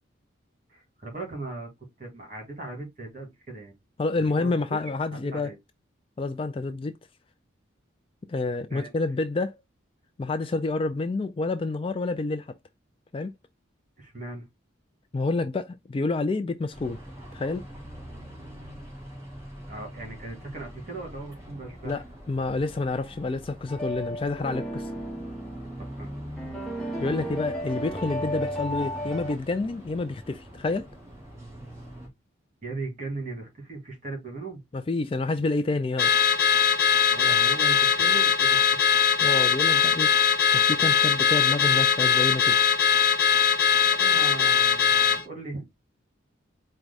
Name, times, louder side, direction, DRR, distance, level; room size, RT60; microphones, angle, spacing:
voice 1, 0.7-1.7 2.0-3.7 4.4-4.8 5.1-5.6 8.7-8.9 14.0-14.4 19.6-22.0 25.8-26.2 32.6-34.6 37.1-38.9 43.6-45.7, right 3 dB, 40° right, 2.1 m, -38 dB
voice 2, 4.0-5.5 6.2-6.9 8.3-9.5 10.2-12.5 13.1-13.3 15.1-17.0 17.3-17.6 21.8-24.9 27.0-30.9 34.7-36.1 39.2-40.1 40.5-42.6, left 3 dB, 25° left, 0.3 m, -28 dB
sound 1, 16.7-32.1, equal, 15° right, 1.5 m, -43 dB
sound 2, 23.7-29.3, equal, ahead, 1.0 m, -34 dB
Car / Alarm, 36.0-45.2, left 7 dB, 50° left, 0.9 m, -21 dB
4.6 x 2.1 x 4.0 m
head